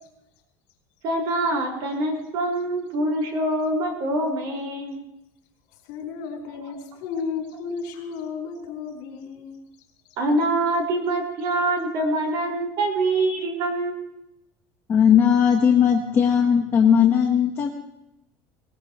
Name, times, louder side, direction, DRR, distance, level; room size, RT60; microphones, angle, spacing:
voice 1, 1.0-5.0 10.2-14.1, right 2 dB, 50° right, 1 dB, 4.9 m, -25 dB
voice 2, 5.9-9.6, left 5 dB, 65° left, 1 dB, 4.7 m, -33 dB
voice 3, 14.9-17.7, left 8 dB, 25° left, 1 dB, 1.2 m, -18 dB
21.0 x 19.5 x 3.1 m, 0.86 s
cardioid pair, 160°, 9 cm